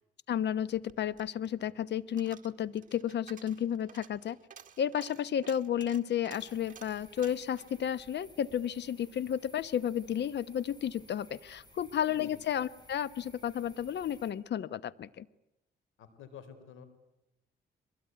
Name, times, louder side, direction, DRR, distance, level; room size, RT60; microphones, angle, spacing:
voice 1, 0.3-4.4 4.8-15.3, left 9 dB, 60° left, 18 dB, 1.0 m, -32 dB
Coin (dropping), 0.7-9.1 9.4-9.5, right 8 dB, 40° right, 1.8 m, -55 dB
sound 1, 6.4-14.3, left 1 dB, 20° left, 6.6 m, -58 dB
voice 2, 16.0-16.8, left 8 dB, 85° left, 12 dB, 3.9 m, -50 dB
23.0 x 22.0 x 9.5 m, 0.88 s
cardioid pair, 90°, 20 cm